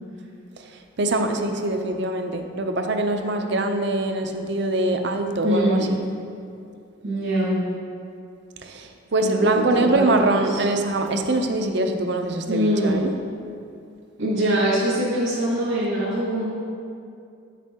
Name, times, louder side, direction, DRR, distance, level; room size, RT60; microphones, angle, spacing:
voice 1, 1.0-6.0 8.6-13.1, right 2 dB, 60° right, 5 dB, 0.6 m, -23 dB
voice 2, 5.4-5.9 7.0-7.6 9.2-10.6 12.5-13.0 14.2-16.4, equal, 85° right, -9 dB, 1.8 m, -23 dB
9.3 x 6.7 x 3.7 m, 2.4 s
head